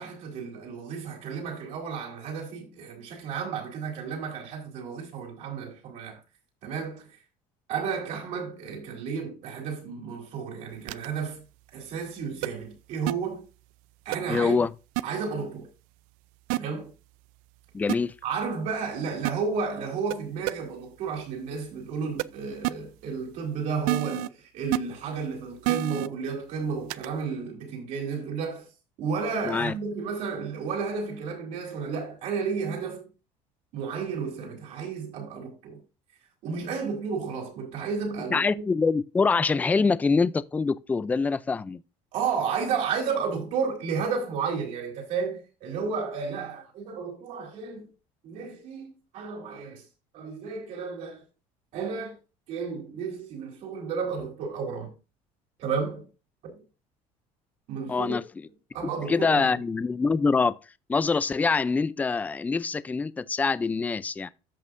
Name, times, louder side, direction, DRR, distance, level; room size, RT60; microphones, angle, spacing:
voice 1, 0.0-6.2 6.6-7.1 7.7-11.4 11.7-13.4 14.1-14.6 15.0-15.7 16.5-16.9 18.2-28.7 29.0-33.1 33.7-35.8 36.4-38.6 42.1-47.9 48.2-49.8 50.1-51.2 51.7-52.2 52.5-54.9 55.6-56.1 56.4-56.5 57.7-58.2 58.7-59.6, right 5 dB, 60° right, 3.7 m, -32 dB
sound 1, 10.9-11.1 12.4-12.5 13.1-13.2 14.1-14.2 15.0-15.1 16.5-16.6 17.9-18.0 19.2-19.3 20.1-20.2 20.5-20.6 22.2-22.3 22.6-22.7 23.9-24.3 24.7-24.8 25.6-26.1 26.9-27.1, right 18 dB, 80° right, 0.4 m, -26 dB
voice 2, 14.3-14.7 17.7-18.1 29.4-29.7 38.3-41.8 57.9-58.2 59.1-60.6 60.9-64.3, left 4 dB, 10° left, 0.4 m, -25 dB
14.0 x 5.4 x 2.6 m
cardioid pair, 150°, 14 cm